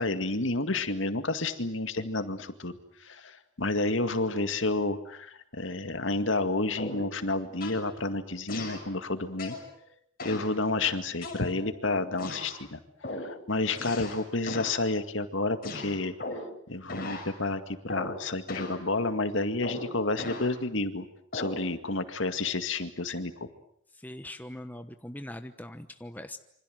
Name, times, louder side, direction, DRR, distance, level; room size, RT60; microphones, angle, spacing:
voice 1, 0.0-2.8 3.0-9.6 10.2-12.8 13.1-16.1 16.7-21.1 21.3-23.3, left 2 dB, 70° left, 9 dB, 2.1 m, -30 dB
sound 1, 6.8-7.1 7.6-7.9 8.5-8.9 9.4-9.7 10.2-10.5 11.2-11.8 12.2-12.6 13.0-13.3 13.8-14.2 14.5-14.8 15.6-16.6 16.9-17.3 17.9-18.2 18.5-18.8 19.6-20.5 21.3-21.6, left 2 dB, 45° left, 6.2 m, -37 dB
voice 2, 23.9-26.4, left 1 dB, 10° left, 8 dB, 1.1 m, -41 dB
27.5 x 25.5 x 7.8 m, 0.70 s
head